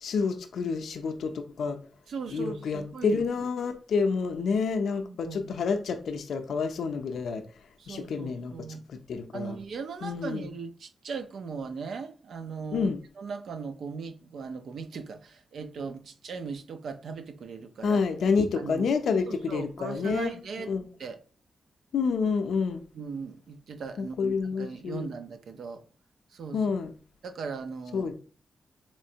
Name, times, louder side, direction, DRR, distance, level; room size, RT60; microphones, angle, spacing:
voice 1, 0.0-1.8 2.3-7.4 7.9-8.5 9.1-9.6 10.0-10.5 12.7-13.0 17.8-20.3 20.7-20.9 21.9-22.8 24.0-25.1 26.5-26.9 27.9-28.1, left 5 dB, 75° left, 0.4 m, -28 dB
voice 2, 2.1-3.2 5.0-5.5 7.8-8.8 9.3-12.9 13.2-18.0 18.6-18.9 19.3-20.7 21.0-21.2 22.9-25.8 26.3-26.6 27.2-28.1, right 5 dB, 70° right, 0.5 m, -38 dB
4.2 x 3.0 x 2.7 m
wide cardioid pair, 150°, 0 cm